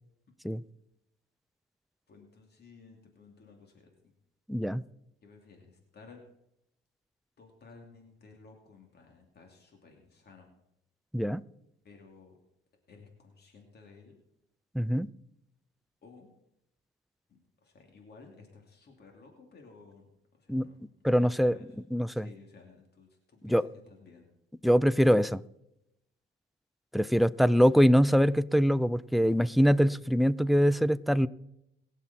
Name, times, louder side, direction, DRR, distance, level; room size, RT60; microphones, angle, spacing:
voice 1, 2.1-3.9 5.2-6.2 7.4-10.5 11.8-12.4 12.9-14.2 16.0-16.3 17.3-20.1 20.3-20.8 21.2-21.7 22.1-24.3, left 4 dB, 55° left, 2 dB, 2.7 m, -55 dB
voice 2, 4.5-4.8 11.1-11.4 14.7-15.1 20.5-20.7 21.0-21.6 21.9-22.3 23.4-23.7 24.6-25.4 26.9-31.3, equal, ahead, 18 dB, 0.4 m, -23 dB
21.5 x 7.4 x 4.3 m, 0.82 s
cardioid pair, 90°, 20 cm